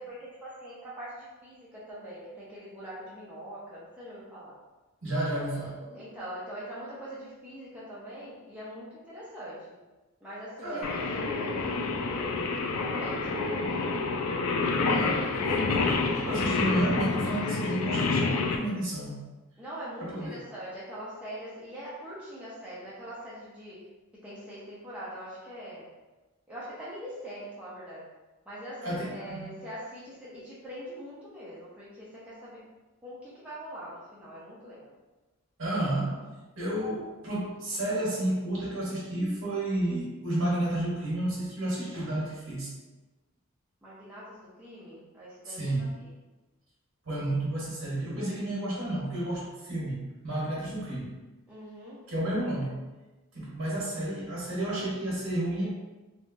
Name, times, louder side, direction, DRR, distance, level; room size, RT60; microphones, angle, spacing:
voice 1, 0.0-4.5 5.5-9.8 10.2-12.3 12.8-14.1 19.6-23.8 24.2-25.9 26.5-28.0 28.5-32.6 33.0-34.9 36.0-36.2 43.8-45.7 51.5-52.0, equal, 5° right, -9 dB, 0.5 m, -43 dB
voice 2, 5.0-5.8 10.6-10.9 14.9-19.2 20.0-20.4 28.8-29.2 35.6-36.2 36.6-42.7 45.4-45.9 47.0-51.1 52.1-52.7 53.3-55.7, right 1 dB, 60° right, -7 dB, 1.2 m, -31 dB
Singing, 10.8-18.6, left 3 dB, 75° left, 0.4 m, -28 dB
3.2 x 2.3 x 2.5 m, 1.2 s
head